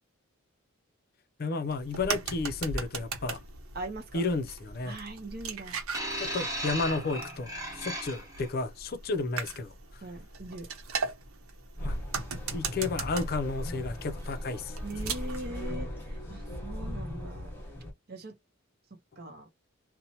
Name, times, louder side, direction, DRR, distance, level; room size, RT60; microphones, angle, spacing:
voice 1, 1.4-3.4 4.1-5.0 6.2-9.7 11.8-12.0 12.5-14.7, left 3 dB, 45° left, 0.5 m, -32 dB
sound 1, 1.7-15.5, right 4 dB, 80° right, 0.8 m, -39 dB
voice 2, 3.7-4.2 4.8-5.8 10.0-10.7 14.8-17.6 18.1-18.4 18.9-19.5, right 2 dB, 45° right, 0.7 m, -41 dB
sound 2, 5.9-8.5 9.4-9.6, right 1 dB, 15° right, 1.0 m, -36 dB
sound 3, 11.8-17.9, equal, 10° left, 1.1 m, -38 dB
2.8 x 2.1 x 2.7 m
head